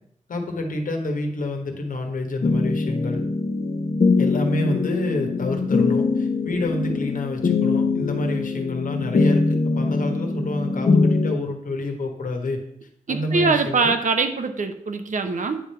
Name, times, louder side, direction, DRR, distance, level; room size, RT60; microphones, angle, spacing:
voice 1, 0.3-3.2 4.2-12.6 13.1-13.9, left 2 dB, 85° left, 4 dB, 1.4 m, -28 dB
sound 1, 2.4-11.4, left 4 dB, 55° left, 0.9 m, -22 dB
voice 2, 13.1-15.6, right 4 dB, 70° right, 7 dB, 0.8 m, -23 dB
9.7 x 3.5 x 5.7 m, 0.71 s
wide cardioid pair, 90°, 14 cm